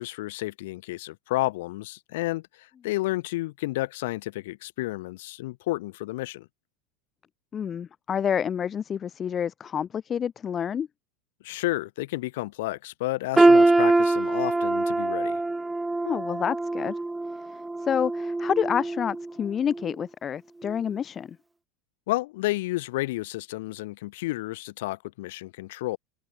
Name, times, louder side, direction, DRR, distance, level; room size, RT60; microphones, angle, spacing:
voice 1, 0.0-6.5 11.4-15.4 22.1-26.0, left 19 dB, 75° left, 6.9 m, -31 dB
voice 2, 7.5-10.9 16.0-17.0 17.3-21.4, left 8 dB, 25° left, 2.1 m, -28 dB
sound 1, 13.4-19.3 19.7-19.9 20.7-20.8, right 2 dB, 10° right, 1.9 m, -23 dB
supercardioid pair, 130°, 0 cm